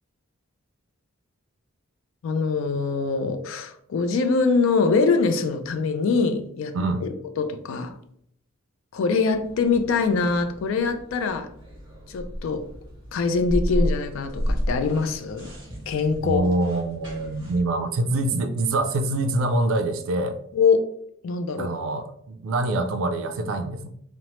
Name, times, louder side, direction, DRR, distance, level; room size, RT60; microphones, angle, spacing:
voice 1, 2.2-7.1 7.4-8.0 8.9-11.5 12.1-12.6 13.1-15.5 15.9-16.5 20.5-20.9 21.2-21.7, left 4 dB, 65° left, 8 dB, 0.3 m, -23 dB
voice 2, 6.7-7.1 16.2-20.4 21.6-23.9, right 2 dB, 70° right, 8 dB, 0.3 m, -25 dB
sound 1, 9.3-17.6, equal, 20° right, 1.0 m, -32 dB
3.0 x 2.0 x 2.9 m, 0.70 s
head